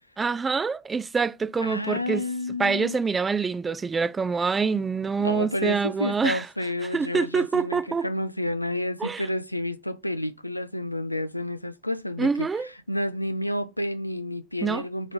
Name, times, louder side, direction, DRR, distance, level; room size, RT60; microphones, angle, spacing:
voice 1, 0.2-2.2 2.6-6.4 6.9-8.1 9.0-9.2 12.2-12.7 14.6-14.8, right 5 dB, 20° right, 0.5 m, -25 dB
voice 2, 1.6-3.0 5.2-15.1, left 1 dB, 90° left, 0.5 m, -30 dB
8.9 x 4.5 x 3.6 m
figure-of-eight pair, 75°, 0 cm